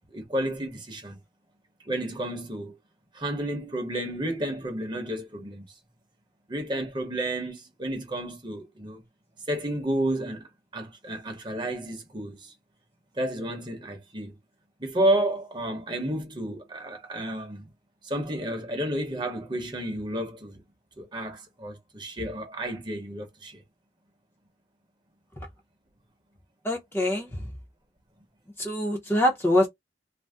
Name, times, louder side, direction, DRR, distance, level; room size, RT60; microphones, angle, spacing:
voice 1, 0.1-1.2 1.8-2.8 3.1-5.6 6.5-9.0 9.5-12.5 13.1-14.3 14.8-17.7 18.0-20.6 21.0-23.6, right 1 dB, 25° right, 0.9 m, -31 dB
voice 2, 26.6-27.5 28.6-29.7, left 1 dB, 15° left, 0.7 m, -24 dB
2.5 x 2.1 x 3.4 m
head